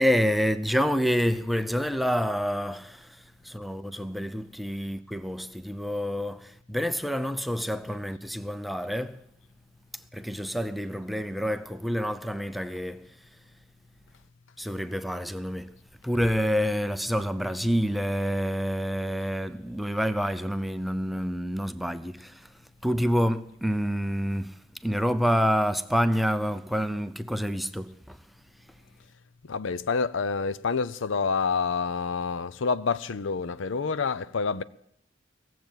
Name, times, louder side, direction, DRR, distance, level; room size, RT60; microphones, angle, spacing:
voice 1, 0.0-3.2 3.4-9.2 10.1-13.1 14.6-15.7 16.0-22.5 22.8-28.2, equal, ahead, 0.5 m, -28 dB
voice 2, 29.5-34.6, left 5 dB, 70° left, 0.6 m, -28 dB
17.5 x 7.7 x 8.8 m
head